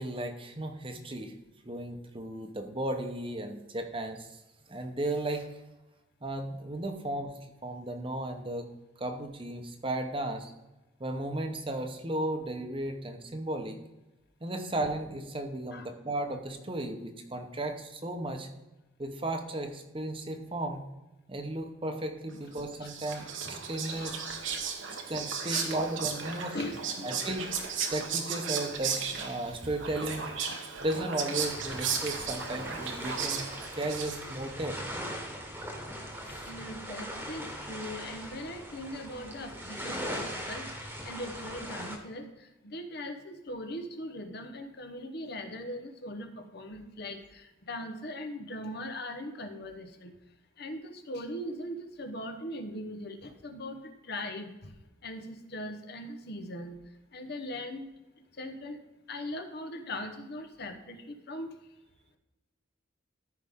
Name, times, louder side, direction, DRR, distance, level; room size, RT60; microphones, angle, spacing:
voice 1, 0.0-1.3 1.6-4.3 4.7-5.5 6.2-7.3 7.6-8.7 9.0-10.5 11.0-13.8 14.4-18.5 19.0-20.8 21.3-24.2 24.9-26.6 27.0-27.5 27.9-30.3 30.8-33.4 33.8-34.8 36.3-36.5, right 1 dB, 25° right, 5 dB, 1.0 m, -35 dB
Whispering, 22.5-34.5, right 6 dB, 75° right, 1.2 m, -35 dB
voice 2, 24.0-24.4 25.5-25.7 26.5-27.1 36.3-50.1 50.6-54.7 55.0-57.9 58.4-58.8 59.1-61.5, left 1 dB, 55° left, 6 dB, 1.0 m, -40 dB
sound 1, 31.3-42.0, equal, 10° right, 1.4 m, -40 dB
14.0 x 5.1 x 3.7 m, 0.99 s
head